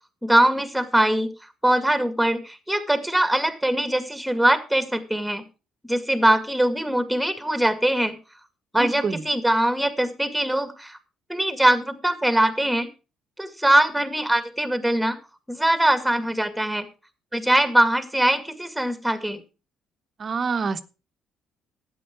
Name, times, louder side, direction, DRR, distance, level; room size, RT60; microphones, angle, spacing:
voice 1, 0.2-1.3 1.6-5.4 5.9-8.2 8.7-11.0 11.3-12.9 13.4-15.2 15.5-16.9 17.3-19.4, right 1 dB, ahead, 9 dB, 2.2 m, -22 dB
voice 2, 8.8-9.2 20.2-20.8, right 5 dB, 45° right, 10 dB, 1.1 m, -26 dB
12.5 x 9.0 x 4.7 m, 0.32 s
hypercardioid pair, 55°, 0 cm